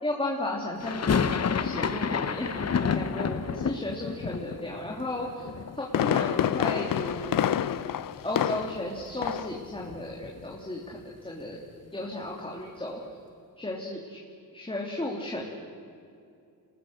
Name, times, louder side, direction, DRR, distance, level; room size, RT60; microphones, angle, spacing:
voice 1, 0.0-1.3 1.6-2.5 2.8-5.4 5.8-7.5 8.2-11.6 11.9-13.0 13.6-14.2 14.5-15.5, left 1 dB, 15° left, -2 dB, 3.1 m, -34 dB
sound 1, 0.8-6.8 7.0-7.9 8.1-8.2 8.5-10.6, left 6 dB, 45° left, 1.1 m, -31 dB
Fireworks, 5.5-8.9 9.2-9.6 9.9-10.0, left 10 dB, 70° left, 0.8 m, -27 dB
27.0 x 20.0 x 6.6 m, 2.5 s
cardioid pair, 90°, 36 cm